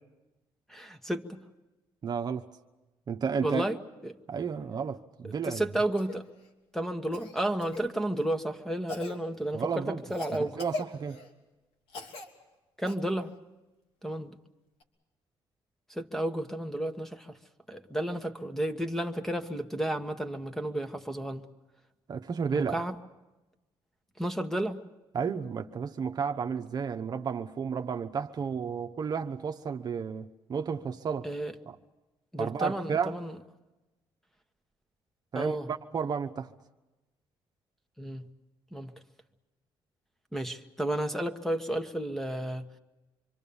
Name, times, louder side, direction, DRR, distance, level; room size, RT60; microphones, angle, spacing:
voice 1, 0.7-1.4 3.4-3.8 4.0-4.1 5.2-6.3 6.7-10.6 12.8-13.3 14.0-14.4 15.9-17.4 17.7-21.5 22.5-22.9 24.2-24.8 31.2-31.5 32.3-33.4 35.3-35.7 38.0-38.3 38.7-38.9 40.3-42.7, right 1 dB, 5° left, 1.4 m, -32 dB
voice 2, 2.0-2.4 3.1-3.7 4.3-5.6 9.5-10.0 10.3-11.2 22.1-22.8 25.1-31.3 31.7-31.8 32.4-33.1 35.3-36.5, right 6 dB, 45° right, 1.0 m, -32 dB
Cough, 6.0-6.2 7.1-7.9 8.9-9.2 10.1-11.3 11.9-12.3 12.9-13.0 14.8-14.9, left 3 dB, 90° left, 3.0 m, -40 dB
26.5 x 24.0 x 7.1 m
cardioid pair, 105°, 9 cm